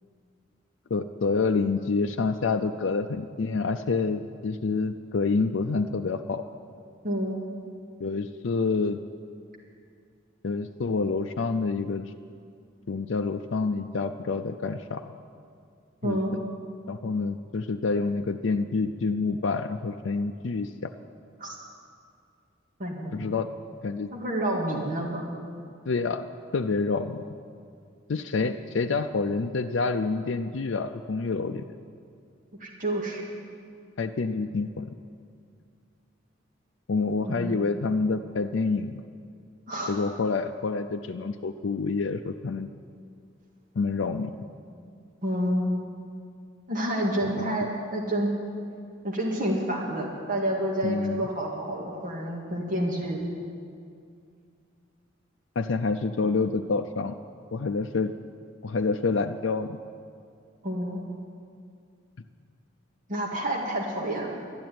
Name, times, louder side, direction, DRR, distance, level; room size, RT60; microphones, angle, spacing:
voice 1, 0.9-6.4 8.0-9.0 10.4-12.1 12.9-15.0 16.0-16.2 16.9-20.9 23.1-23.5 23.8-24.1 25.9-27.2 28.1-31.6 34.0-34.9 36.9-39.0 39.9-42.7 43.8-44.4 47.2-47.7 50.8-51.3 55.6-57.1 57.5-58.1 58.6-59.8, left 4 dB, 65° left, 5 dB, 0.5 m, -28 dB
voice 2, 7.0-7.4 16.0-16.3 21.4-21.5 22.8-23.2 24.1-25.2 32.6-33.2 37.2-37.5 39.7-40.0 45.2-45.8 46.7-48.3 49.0-53.2 60.6-61.0 63.1-64.3, right 1 dB, 45° right, -2 dB, 2.0 m, -29 dB
12.5 x 10.5 x 9.3 m, 2.3 s
head